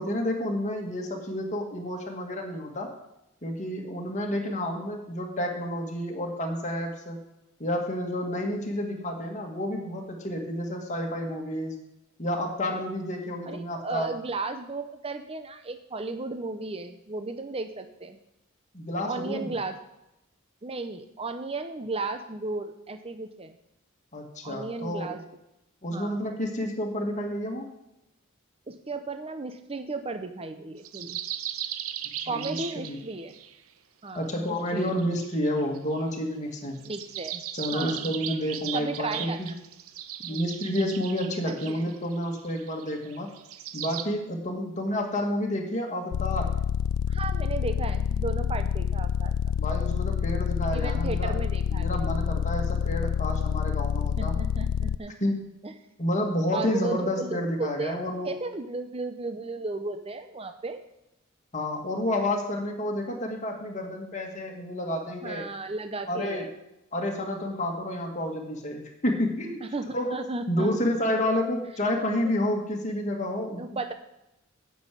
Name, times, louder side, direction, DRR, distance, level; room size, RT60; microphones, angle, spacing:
voice 1, 0.0-2.9 3.4-7.2 7.6-11.7 12.2-14.1 18.7-19.6 24.1-25.1 25.8-27.7 32.3-33.0 34.1-36.8 37.5-39.5 40.2-43.3 43.7-46.5 49.6-51.3 51.7-54.3 55.2-55.5 56.0-58.3 61.5-65.5 66.1-66.4 66.9-69.6 69.9-73.7, left 1 dB, 35° left, 1 dB, 1.8 m, -30 dB
voice 2, 13.5-18.2 19.0-19.8 20.6-23.5 24.4-25.2 25.9-26.2 28.7-31.2 32.3-33.3 34.0-35.0 36.8-37.4 37.7-38.1 38.7-39.6 40.3-40.6 41.5-41.8 44.6-44.7 47.1-49.3 50.7-51.9 54.2-55.3 55.6-55.7 56.5-58.0 58.2-60.8 65.2-66.5 69.6-70.8 71.3-71.4 73.6-73.9, right 3 dB, 25° right, 7 dB, 0.7 m, -35 dB
sound 1, 30.8-33.5 34.3-36.0 36.8-44.0, right 11 dB, 80° right, 0.8 m, -38 dB
sound 2, 46.1-55.0, left 8 dB, 90° left, 0.3 m, -27 dB
9.4 x 6.3 x 8.4 m, 0.90 s
head